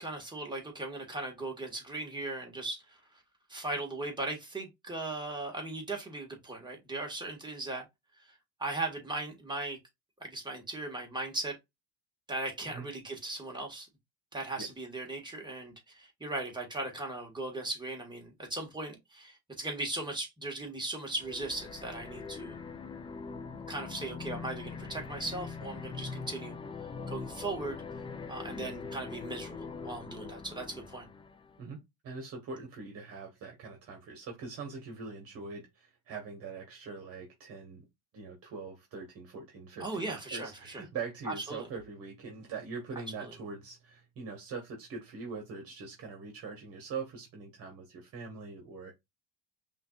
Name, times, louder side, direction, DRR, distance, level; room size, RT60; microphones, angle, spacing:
voice 1, 0.0-3.0 3.5-7.8 8.2-8.3 8.6-9.8 10.2-11.6 12.3-13.9 14.3-22.6 23.7-26.5 27.1-27.8 28.3-31.1 39.8-40.8 41.2-41.7 43.2-43.3, right 2 dB, 15° right, 1.7 m, -38 dB
sound 1, 21.1-31.6, left 5 dB, 15° left, 0.5 m, -42 dB
voice 2, 32.0-37.9 38.1-48.9, right 4 dB, 50° right, 1.5 m, -42 dB
5.6 x 2.6 x 2.4 m
supercardioid pair, 110°, 31 cm